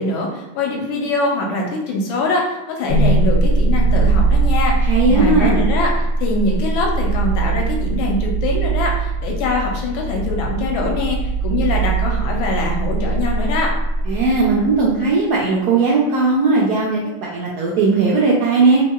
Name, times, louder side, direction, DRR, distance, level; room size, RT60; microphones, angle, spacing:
voice 1, 0.0-13.7, left 2 dB, 85° left, 0 dB, 1.4 m, -23 dB
sound 1, 2.9-15.0, right 3 dB, 70° left, 1.0 m, -20 dB
voice 2, 4.9-5.7 14.1-18.8, right 3 dB, 80° right, -5 dB, 0.9 m, -17 dB
3.0 x 2.8 x 2.2 m, 1.0 s
omnidirectional pair, 2.2 m